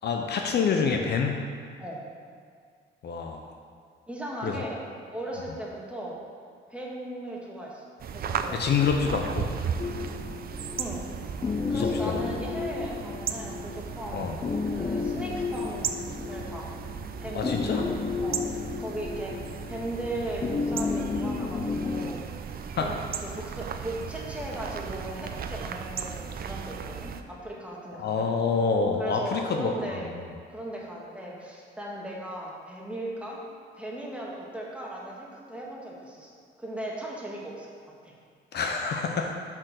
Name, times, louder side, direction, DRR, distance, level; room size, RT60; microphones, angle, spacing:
voice 1, 0.0-1.4 3.0-3.4 4.4-4.6 8.5-9.5 11.7-12.2 14.1-14.4 17.3-17.9 22.8-22.9 28.0-30.2 38.5-39.3, left 5 dB, 55° left, 3 dB, 0.7 m, -27 dB
voice 2, 4.1-4.8 5.1-6.2 6.7-7.8 8.1-8.6 10.8-11.0 11.7-14.3 14.7-16.7 17.2-17.9 18.2-18.4 18.8-19.3 19.7-22.3 22.8-28.3 29.0-30.1 30.5-33.4 33.7-37.7 38.0-38.1, right 1 dB, 5° right, -4 dB, 1.5 m, -37 dB
sound 1, 8.0-27.2, right 6 dB, 50° right, 0.5 m, -36 dB
sound 2, 9.8-22.1, left 4 dB, 25° left, 0.4 m, -32 dB
5.8 x 4.6 x 6.4 m, 2.1 s
cardioid pair, 90°, 20 cm